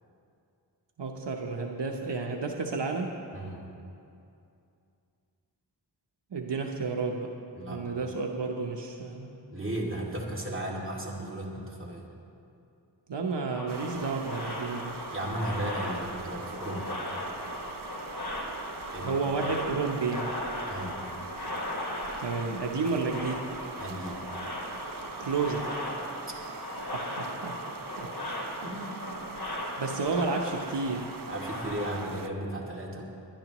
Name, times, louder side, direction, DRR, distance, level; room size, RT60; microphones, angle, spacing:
voice 1, 1.0-3.1 6.3-7.3 7.7-9.3 13.1-15.0 19.0-20.3 22.2-23.6 25.2-25.7 26.9-27.6 28.0-28.1 29.8-31.1, right 4 dB, 80° right, 2 dB, 0.9 m, -31 dB
voice 2, 3.3-3.7 7.6-7.8 9.5-12.0 15.1-16.9 18.9-19.1 20.7-21.0 23.8-24.2 28.3-29.3 31.3-33.0, right 1 dB, 30° right, -3 dB, 2.3 m, -35 dB
sound 1, 13.5-31.9, left 1 dB, 60° left, 2.4 m, -38 dB
sound 2, 13.7-32.3, right 6 dB, 55° right, 0.5 m, -43 dB
21.5 x 11.0 x 3.0 m, 2.6 s
wide cardioid pair, 60°, 41 cm